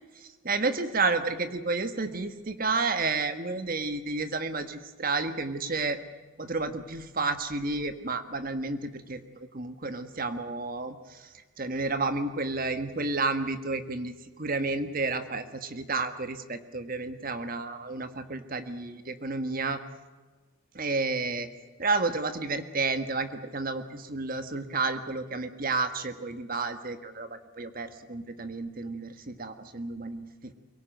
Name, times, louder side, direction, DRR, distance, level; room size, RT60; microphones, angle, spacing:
voice 1, 0.2-6.0 6.4-9.2 9.5-11.2 11.6-14.1 14.4-19.8 20.7-21.5 21.8-30.5, right 3 dB, 45° right, 9 dB, 1.5 m, -31 dB
24.0 x 18.0 x 9.1 m, 1.3 s
head